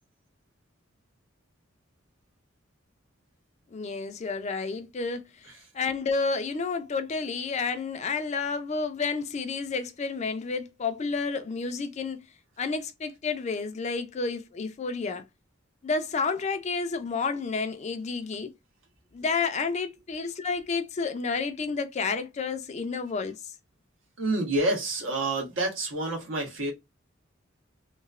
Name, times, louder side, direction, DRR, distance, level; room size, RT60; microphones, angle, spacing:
voice 1, 3.7-5.5 5.7-12.3 12.6-15.2 15.8-18.5 19.1-23.4, left 4 dB, 35° left, 0.4 m, -30 dB
voice 2, 24.2-26.7, right 2 dB, 80° right, 1.2 m, -28 dB
3.0 x 2.1 x 2.3 m
head